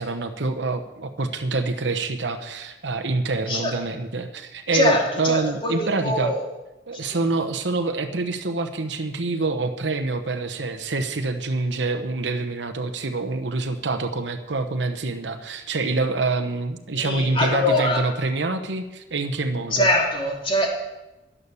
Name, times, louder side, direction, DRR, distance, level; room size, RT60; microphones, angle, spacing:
voice 1, 0.0-6.4 6.9-19.9, right 3 dB, 90° right, 6 dB, 1.0 m, -26 dB
voice 2, 4.7-6.4 7.0-7.2 16.9-18.0 19.7-20.8, left 1 dB, 30° left, -1 dB, 3.1 m, -23 dB
11.5 x 11.0 x 7.0 m, 1.0 s
head